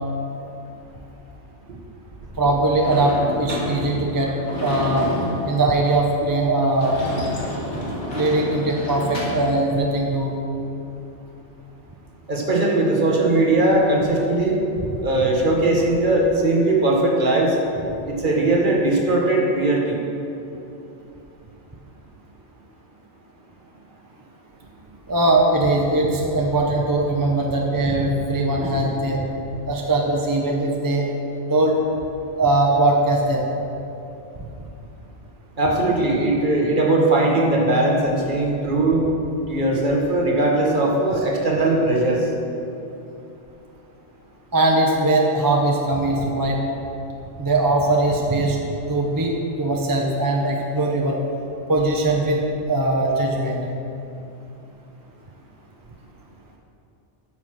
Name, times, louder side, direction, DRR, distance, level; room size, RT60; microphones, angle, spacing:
voice 1, 2.4-4.3 4.6-5.1 5.4-7.0 8.1-10.3 25.1-29.2 29.7-31.0 31.4-31.8 32.3-33.4 44.5-46.6 47.4-48.6 48.9-51.2 51.7-52.4 52.7-53.6, right 2 dB, 20° right, 0 dB, 0.7 m, -20 dB
Sliding door / Slam, 2.8-9.5, left 1 dB, 85° left, 2.3 m, -30 dB
voice 2, 12.3-14.6 15.0-17.6 18.0-20.0 35.6-39.1 39.5-42.3, right 2 dB, 45° right, -2 dB, 1.4 m, -19 dB
9.2 x 5.7 x 6.3 m, 2.8 s
omnidirectional pair, 1.2 m